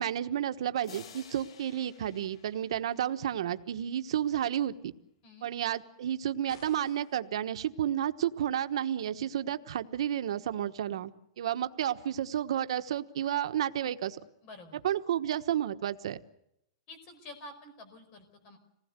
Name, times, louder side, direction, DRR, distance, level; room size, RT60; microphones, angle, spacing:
voice 1, 0.0-4.9 5.4-11.1 11.4-14.2 14.8-16.2, right 10 dB, 70° right, 10 dB, 1.2 m, -31 dB
sound 1, 0.8-3.5, left 8 dB, 85° left, 3.2 m, -53 dB
sound 2, 6.5-7.2, left 5 dB, 55° left, 4.5 m, -56 dB
voice 2, 14.4-14.8 16.9-18.6, left 2 dB, 30° left, 10 dB, 5.1 m, -49 dB
27.0 x 19.5 x 8.1 m, 0.80 s
supercardioid pair, 175°, 3 cm